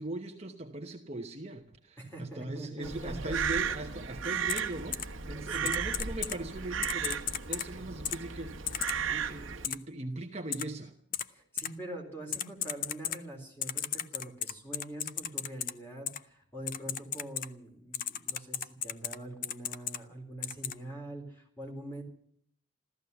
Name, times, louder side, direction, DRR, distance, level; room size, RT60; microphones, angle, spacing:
voice 1, 0.0-10.9, right 2 dB, 30° right, 3 dB, 1.0 m, -40 dB
voice 2, 2.0-3.3 5.2-5.8 11.3-22.0, right 1 dB, 10° left, 1 dB, 3.9 m, -44 dB
Crow, 2.8-9.7, right 7 dB, 75° right, 1.3 m, -35 dB
Typing, 4.5-4.6 4.9-5.0 5.6-6.4 6.8-7.7 8.0-8.2 8.7-8.9 9.6-9.7 10.5-10.6 11.1-11.2 11.6-11.7 12.3-13.2 13.6-15.7 16.1-16.2 16.7-17.5 17.9-19.2 19.4-20.0 20.4-20.7, left 10 dB, 40° left, 0.6 m, -34 dB
14.5 x 14.0 x 7.0 m, 0.63 s
head